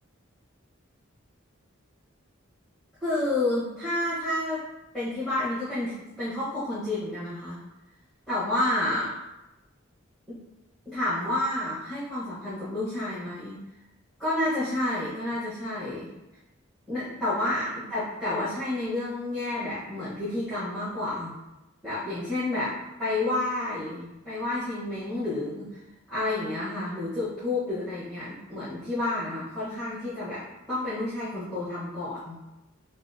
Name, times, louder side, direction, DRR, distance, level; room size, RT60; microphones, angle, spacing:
voice 1, 3.0-4.6 4.9-7.6 8.3-9.2 10.3-10.4 10.8-13.6 14.2-16.1 16.9-21.3 21.8-25.7 26.1-32.4, left 1 dB, ahead, -13 dB, 1.2 m, -30 dB
5.7 x 2.1 x 2.8 m, 0.98 s
head